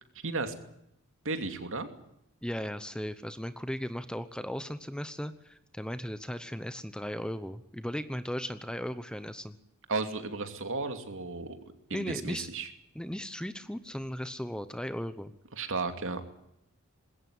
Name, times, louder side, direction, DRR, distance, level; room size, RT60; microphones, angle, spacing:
voice 1, 0.2-0.5 1.2-1.9 9.9-11.6 11.9-12.7 15.6-16.2, right 3 dB, 60° right, 8 dB, 2.7 m, -34 dB
voice 2, 2.4-9.5 11.9-12.5 12.9-15.3, equal, 5° left, 12 dB, 0.9 m, -37 dB
21.0 x 16.5 x 9.8 m, 0.79 s
head